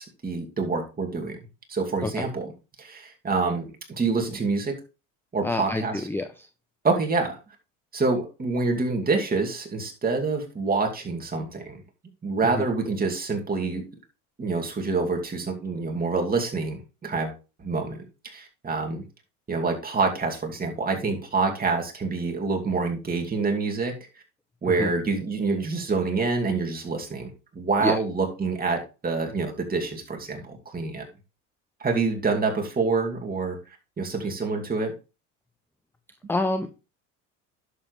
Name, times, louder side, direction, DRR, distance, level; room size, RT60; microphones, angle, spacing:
voice 1, 0.0-1.4 1.7-2.5 2.8-4.7 5.3-6.1 6.8-7.4 7.9-11.8 12.2-13.8 14.4-19.0 19.5-23.9 24.6-31.0 31.8-34.9, right 4 dB, 25° right, 2 dB, 2.5 m, -27 dB
voice 2, 5.4-6.5 12.6-12.7 24.8-24.9 27.8-28.0 36.3-36.7, left 2 dB, 5° left, 8 dB, 0.7 m, -27 dB
11.0 x 7.2 x 3.2 m, 0.31 s
supercardioid pair, 95°, 38 cm